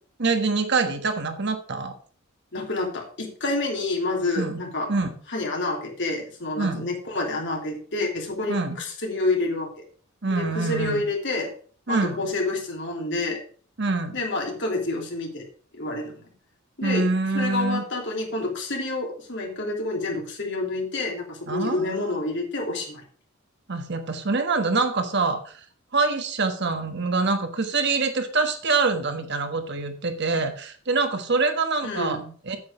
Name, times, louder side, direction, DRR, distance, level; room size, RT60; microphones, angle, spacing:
voice 1, 0.2-1.9 4.4-4.6 4.9-5.1 6.6-6.8 8.5-8.8 10.2-11.0 11.9-12.2 13.8-14.2 16.8-17.8 21.5-22.1 23.7-25.6 25.9-32.2 32.4-32.6, right 3 dB, 60° right, 7 dB, 1.4 m, -25 dB
voice 2, 2.5-4.9 5.3-9.7 10.3-11.5 11.9-13.4 14.1-15.4 15.7-16.3 16.8-17.1 17.3-23.0 31.8-32.3, left 2 dB, 65° left, 1 dB, 3.0 m, -28 dB
8.5 x 8.0 x 4.9 m, 0.43 s
head